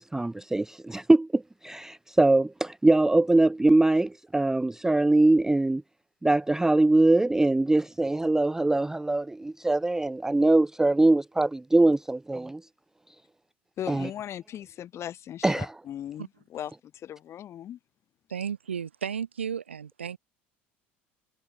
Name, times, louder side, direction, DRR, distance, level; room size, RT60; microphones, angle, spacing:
voice 1, 0.0-5.8 6.2-12.6 13.9-14.1 15.4-15.7, right 2 dB, 10° right, 0.3 m, -22 dB
voice 2, 13.8-17.8, left 11 dB, 45° left, 7.8 m, -38 dB
voice 3, 18.3-20.2, right 7 dB, 85° right, 1.5 m, -33 dB
hypercardioid pair, 65°, 6 cm